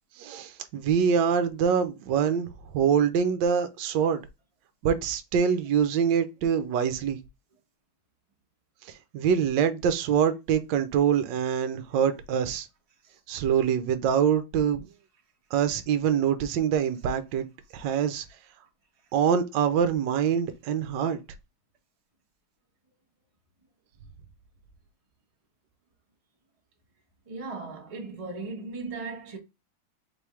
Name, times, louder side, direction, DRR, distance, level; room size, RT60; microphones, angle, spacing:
voice 1, 0.2-4.2 4.8-7.2 9.1-12.7 13.3-14.9 15.5-17.5 17.7-18.2 19.1-21.2, right 7 dB, 70° right, 1.2 m, -25 dB
voice 2, 27.3-29.4, right 3 dB, 30° right, 0.6 m, -37 dB
4.5 x 3.4 x 3.1 m
omnidirectional pair, 2.3 m